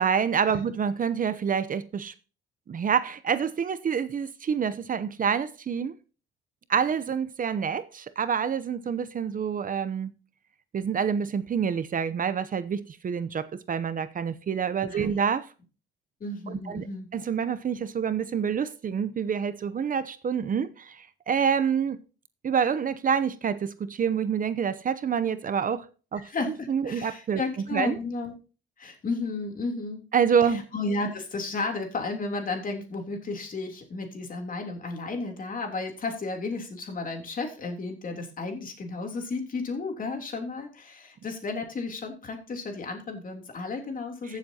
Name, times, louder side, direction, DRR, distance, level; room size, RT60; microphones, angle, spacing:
voice 1, 0.0-2.1 2.7-5.9 6.7-10.1 10.7-15.5 16.5-16.9 17.1-22.0 22.4-25.9 26.1-26.3 26.7-27.4 27.7-28.0 30.1-30.6, right 7 dB, 45° right, 0.8 m, -27 dB
voice 2, 16.2-17.1 26.2-28.3 28.8-30.0 30.4-44.4, left 3 dB, 45° left, 3.2 m, -33 dB
15.0 x 7.3 x 2.8 m
cardioid pair, 90°, 20 cm